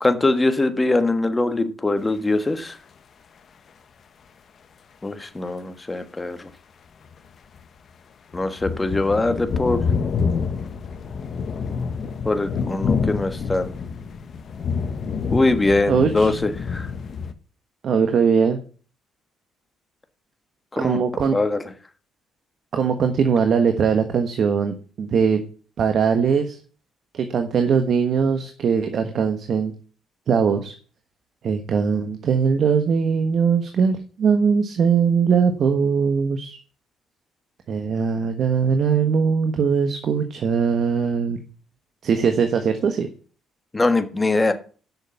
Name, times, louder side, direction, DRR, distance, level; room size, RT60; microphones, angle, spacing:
voice 1, 0.0-2.8 5.0-6.5 8.3-9.8 12.2-13.8 15.3-16.9 20.7-21.0 21.3-21.6 43.7-44.5, left 2 dB, 20° left, 8 dB, 1.4 m, -22 dB
sound 1, 7.0-7.1 7.6-7.7 8.3-17.3, left 5 dB, 50° left, 1.1 m, -27 dB
voice 2, 15.9-16.3 17.8-18.6 20.8-21.4 22.7-25.4 25.8-26.6 27.1-29.7 30.3-30.7 31.4-36.6 37.7-41.4 42.0-43.1, right 6 dB, 55° right, 7 dB, 1.3 m, -20 dB
8.1 x 6.6 x 7.1 m, 0.40 s
cardioid pair, 85°, 0 cm